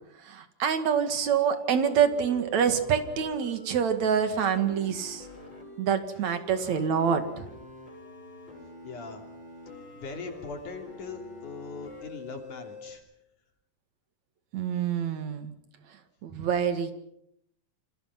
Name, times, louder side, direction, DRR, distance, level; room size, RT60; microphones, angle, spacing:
voice 1, 0.2-5.2 5.8-7.4 14.5-15.5 16.2-16.9, right 7 dB, 60° right, 9 dB, 3.2 m, -26 dB
sound 1, 1.1-13.0, left 1 dB, 35° left, 7.3 m, -46 dB
voice 2, 8.8-9.2 9.9-13.0, left 4 dB, 70° left, 4 dB, 4.4 m, -40 dB
29.0 x 25.5 x 6.0 m, 0.75 s
omnidirectional pair, 3.7 m